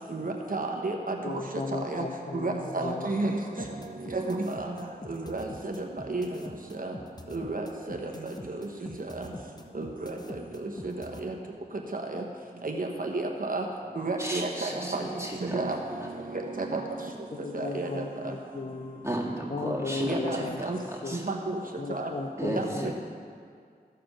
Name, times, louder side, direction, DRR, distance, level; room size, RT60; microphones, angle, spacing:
voice 1, 0.1-1.1 1.8-2.1 2.3-3.4 4.1-4.7 5.1-5.7 6.1-6.3 6.8-6.9 7.3-8.1 9.2-9.3 9.7-10.1 10.8-10.9 11.2-11.3 11.9-12.2 12.6-13.6 14.0-15.0 15.5-15.8 16.6-16.8 17.5-18.0 20.0-20.8 21.1-21.6 21.9-22.1 22.4-22.6, right 3 dB, 60° right, 1 dB, 1.0 m, -31 dB
voice 2, 1.2-3.4 17.3-19.1 19.5-21.3 21.8-22.9, left 3 dB, 45° left, 6 dB, 0.6 m, -36 dB
sound 1, 3.6-11.2, left 1 dB, 25° left, 0.9 m, -43 dB
voice 3, 14.2-15.6 19.0-20.5 20.8-21.3 22.4-22.9, right 1 dB, 15° right, -3 dB, 2.1 m, -34 dB
14.5 x 5.0 x 5.8 m, 2.2 s
wide cardioid pair, 45°, 16 cm